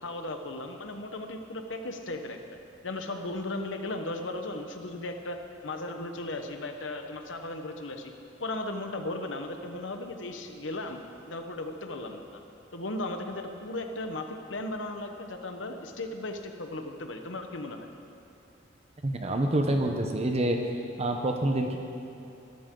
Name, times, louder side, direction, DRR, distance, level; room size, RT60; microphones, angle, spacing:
voice 1, 0.0-2.4 2.8-8.1 8.4-11.0 11.3-12.4 12.7-17.9, left 2 dB, 70° left, 5 dB, 1.2 m, -36 dB
voice 2, 19.0-20.6 21.0-21.8, right 1 dB, 35° right, 4 dB, 0.8 m, -27 dB
21.5 x 13.0 x 3.8 m, 2.8 s
head